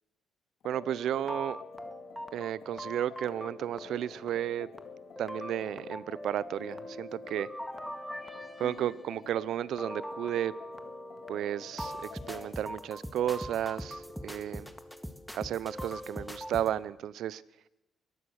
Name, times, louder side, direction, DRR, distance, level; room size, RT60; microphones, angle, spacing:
sound 1, 0.6-12.5, left 6 dB, 65° left, 2.7 m, -49 dB
voice 1, 0.6-1.6 2.3-4.7 5.2-7.5 8.6-10.5 11.3-14.7 15.3-17.4, right 11 dB, 75° right, 20 dB, 0.7 m, -33 dB
sound 2, 1.0-16.7, equal, ahead, 1.8 m, -43 dB
22.5 x 18.0 x 6.5 m, 0.97 s
cardioid pair, 90°, 0 cm